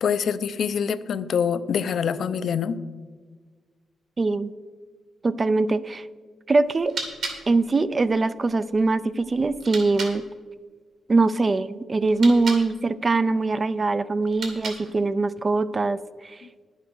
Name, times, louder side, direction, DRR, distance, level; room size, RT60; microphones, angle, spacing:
voice 1, 0.0-2.8 16.4-16.5, left 7 dB, 60° left, 14 dB, 0.5 m, -25 dB
voice 2, 4.2-4.5 5.2-6.1 6.5-6.9 7.5-10.2 11.1-16.4, right 3 dB, 25° right, 15 dB, 0.4 m, -22 dB
sound 1, 6.6-10.2 12.0-12.7 14.2-15.1, right 4 dB, 65° right, 2.3 m, -36 dB
10.5 x 8.2 x 6.1 m, 1.5 s
wide cardioid pair, 150°, 0 cm